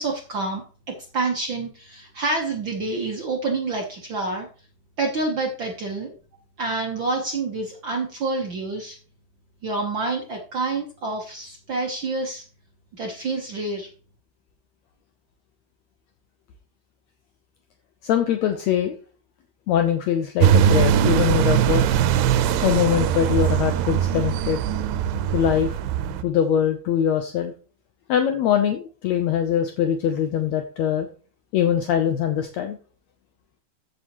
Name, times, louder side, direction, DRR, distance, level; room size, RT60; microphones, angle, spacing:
voice 1, 0.0-4.5 5.0-6.1 6.6-9.0 9.6-12.4 12.9-13.9, right 3 dB, 65° right, 1 dB, 1.1 m, -28 dB
voice 2, 18.0-18.9 19.7-22.0 22.6-24.6 25.3-25.8 26.2-27.5 28.1-31.1 31.5-32.8, left 9 dB, 80° left, 6 dB, 1.6 m, -22 dB
sound 1, 20.4-26.2, right 9 dB, 85° right, 2.3 m, -21 dB
14.5 x 6.4 x 3.0 m, 0.39 s
omnidirectional pair, 4.1 m